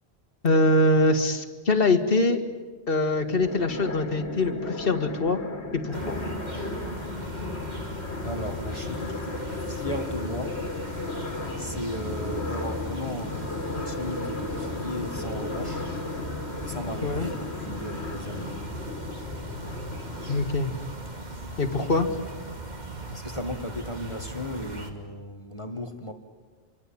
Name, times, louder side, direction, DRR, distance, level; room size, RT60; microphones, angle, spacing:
voice 1, 0.4-2.4 2.9-5.4 5.7-6.0 17.0-17.3 20.3-20.7 21.6-22.1, left 2 dB, 60° left, 6 dB, 2.0 m, -23 dB
sound 1, 3.2-20.4, left 3 dB, 75° left, 2.2 m, -35 dB
sound 2, 5.9-24.9, right 1 dB, 40° right, 2.5 m, -38 dB
voice 2, 8.2-10.6 11.6-15.9 16.6-18.7 23.1-26.1, left 1 dB, 30° left, 6 dB, 1.6 m, -36 dB
27.0 x 24.0 x 8.7 m, 1.4 s
omnidirectional pair, 1.1 m